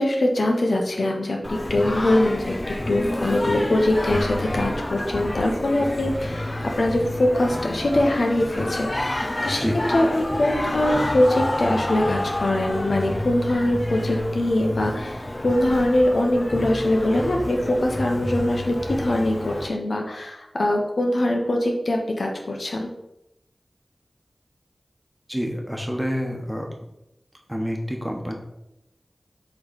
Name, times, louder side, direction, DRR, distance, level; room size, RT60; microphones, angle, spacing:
voice 1, 0.0-9.6 9.9-22.9, left 1 dB, 80° left, 1 dB, 1.1 m, -23 dB
Singing, 1.4-19.7, left 1 dB, 30° left, 0.5 m, -29 dB
voice 2, 25.3-26.7 27.5-28.3, equal, 10° right, 1 dB, 1.2 m, -27 dB
7.7 x 3.3 x 4.2 m, 0.84 s
wide cardioid pair, 50°, 0 cm